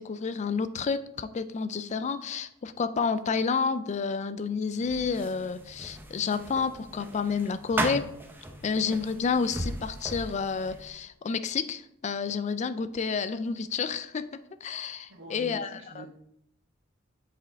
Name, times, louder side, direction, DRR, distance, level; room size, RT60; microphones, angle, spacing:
voice 1, 0.0-8.1 8.6-14.3 14.6-16.1, left 5 dB, 35° left, 12 dB, 0.4 m, -30 dB
sound 1, 4.8-10.9, right 1 dB, 10° right, 0.7 m, -37 dB
voice 2, 15.1-16.1, right 2 dB, 70° right, 1 dB, 1.4 m, -44 dB
6.6 x 5.1 x 3.5 m, 0.75 s
head